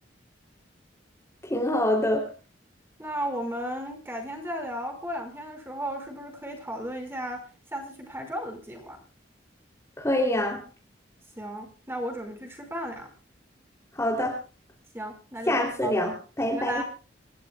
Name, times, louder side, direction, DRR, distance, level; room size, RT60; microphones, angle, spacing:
voice 1, 1.5-2.3 10.0-10.6 13.9-14.3 15.5-16.8, left 1 dB, 15° left, 0 dB, 3.0 m, -25 dB
voice 2, 3.0-7.4 7.7-9.0 11.4-13.1 14.9-16.0 16.5-16.8, equal, 15° right, 4 dB, 5.1 m, -34 dB
27.5 x 14.0 x 2.3 m, 0.36 s
head